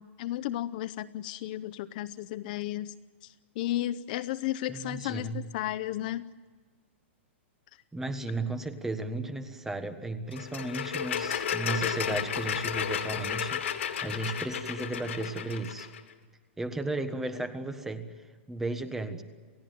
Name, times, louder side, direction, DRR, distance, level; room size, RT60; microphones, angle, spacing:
voice 1, 0.0-2.9 3.6-6.3, left 14 dB, 40° left, 15 dB, 0.7 m, -33 dB
voice 2, 4.7-5.4 7.9-15.9 16.6-18.1 18.5-19.2, right 2 dB, 5° right, 9 dB, 1.5 m, -34 dB
sound 1, 10.3-16.0, left 8 dB, 85° left, 2.9 m, -33 dB
29.0 x 16.0 x 9.3 m, 1.5 s
supercardioid pair, 165°, 7 cm